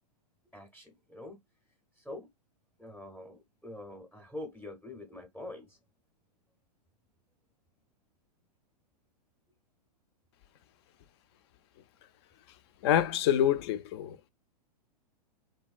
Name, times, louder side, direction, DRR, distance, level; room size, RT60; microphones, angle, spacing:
voice 1, 0.5-1.4 2.0-2.3 2.8-5.8, left 1 dB, ahead, 0.6 m, -45 dB
voice 2, 12.8-14.3, left 10 dB, 40° left, 0.4 m, -27 dB
3.0 x 2.7 x 2.3 m
hypercardioid pair, 140°, 21 cm